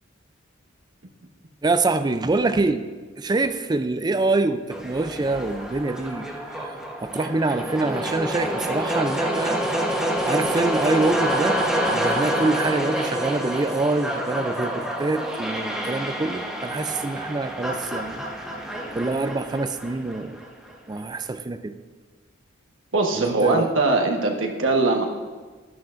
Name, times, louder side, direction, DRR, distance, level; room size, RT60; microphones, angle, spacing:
voice 1, 1.6-2.9 3.2-6.3 6.6-6.8 7.0-9.6 10.3-11.6 11.9-18.2 18.9-20.4 20.9-21.8 23.1-23.7, right 3 dB, 20° right, 10 dB, 0.4 m, -25 dB
sound 1, 4.7-20.7, right 1 dB, 5° right, 1.0 m, -27 dB
voice 2, 22.9-25.1, right 3 dB, 70° right, 2 dB, 1.2 m, -21 dB
12.0 x 11.5 x 2.5 m, 1.4 s
head